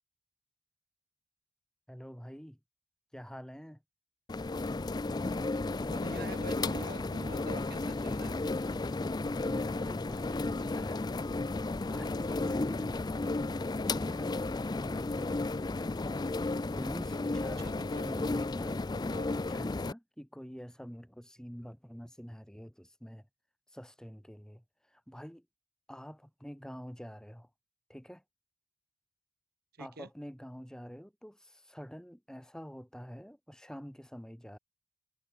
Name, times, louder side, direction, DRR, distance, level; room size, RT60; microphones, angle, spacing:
voice 1, 1.9-2.6 3.1-3.8 9.2-11.1 11.8-13.1 13.6-16.0 16.8-17.6 18.0-23.3 23.7-25.5 25.9-27.5 27.9-28.2 29.8-34.6, equal, 5° left, 2.0 m, -47 dB
sound 1, 4.3-19.9, left 2 dB, 20° left, 0.3 m, -33 dB
voice 2, 5.9-8.6 17.6-18.1 19.1-19.3 29.7-30.1, right 2 dB, 45° right, 1.4 m, -46 dB
head